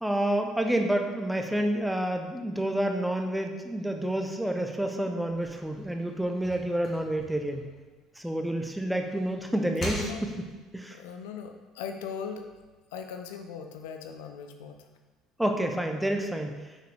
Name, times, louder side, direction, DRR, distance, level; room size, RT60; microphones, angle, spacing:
voice 1, 0.0-7.6 8.2-10.3 10.7-11.0 15.4-16.6, right 1 dB, 5° right, 4 dB, 0.8 m, -29 dB
sound 1, 5.3-8.5 8.9-10.7, left 1 dB, 35° left, 1.8 m, -41 dB
voice 2, 10.9-12.4 12.9-14.8, left 6 dB, 65° left, 5 dB, 0.5 m, -39 dB
6.6 x 6.4 x 3.4 m, 1.3 s
figure-of-eight pair, 60°, 0 cm